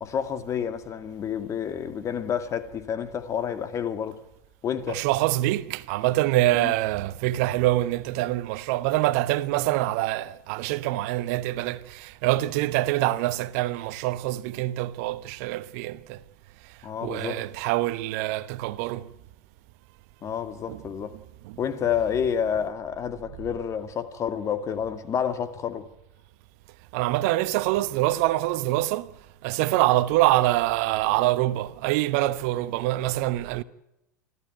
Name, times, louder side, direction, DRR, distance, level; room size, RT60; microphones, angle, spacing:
voice 1, 0.0-4.2 4.6-5.0 6.5-6.7 16.8-17.4 20.2-21.1 21.6-25.9, left 8 dB, 30° left, 2.1 m, -29 dB
voice 2, 4.9-16.2 17.0-19.1 20.7-20.8 21.4-21.6 26.9-29.1 29.4-33.6, right 16 dB, 55° right, 1.0 m, -25 dB
27.5 x 14.0 x 9.2 m
figure-of-eight pair, 85°, 10 cm